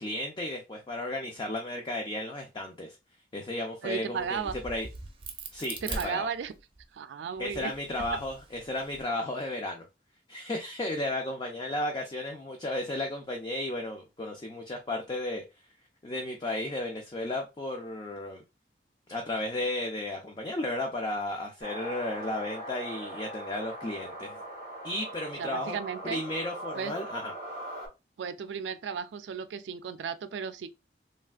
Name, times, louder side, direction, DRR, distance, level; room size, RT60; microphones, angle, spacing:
voice 1, 0.0-3.0 3.3-4.9 5.5-6.2 7.4-9.8 10.3-15.4 16.0-18.4 19.1-24.4 24.8-25.8 26.0-27.3, left 1 dB, 25° left, 0.4 m, -34 dB
voice 2, 3.8-4.5 5.8-6.5 6.9-7.7 25.4-26.2 26.7-26.9 28.2-30.7, right 6 dB, 85° right, 0.3 m, -34 dB
Crack, 4.2-6.8 7.4-9.0, right 3 dB, 30° right, 0.5 m, -41 dB
sound 1, 21.6-27.9, right 1 dB, 70° left, 1.9 m, -40 dB
3.2 x 2.4 x 2.3 m
head